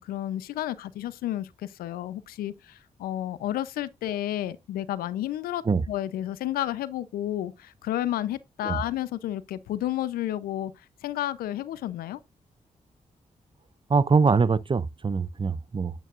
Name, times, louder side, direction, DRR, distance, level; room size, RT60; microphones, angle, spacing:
voice 1, 0.0-10.7 11.0-12.2, left 13 dB, 85° left, 0.6 m, -31 dB
voice 2, 13.9-15.9, right 5 dB, 35° right, 0.6 m, -23 dB
9.0 x 8.9 x 2.4 m
supercardioid pair, 40°, 15 cm